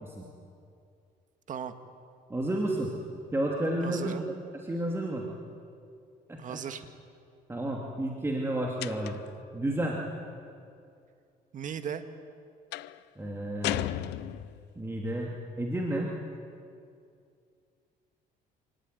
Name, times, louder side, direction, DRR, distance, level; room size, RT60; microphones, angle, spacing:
voice 1, 2.3-2.9 3.3-5.3 6.3-6.6 7.5-9.2 9.5-10.0 13.2-14.0 14.7-16.1, right 1 dB, 15° right, -1 dB, 3.0 m, -31 dB
voice 2, 3.8-4.3 6.4-6.9 11.5-12.0, right 8 dB, 50° right, 8 dB, 1.8 m, -36 dB
sound 1, 8.8-9.4 12.7-13.0 13.6-14.7, left 17 dB, 85° left, 0.6 m, -34 dB
27.0 x 19.0 x 9.6 m, 2.4 s
cardioid pair, 110°, 17 cm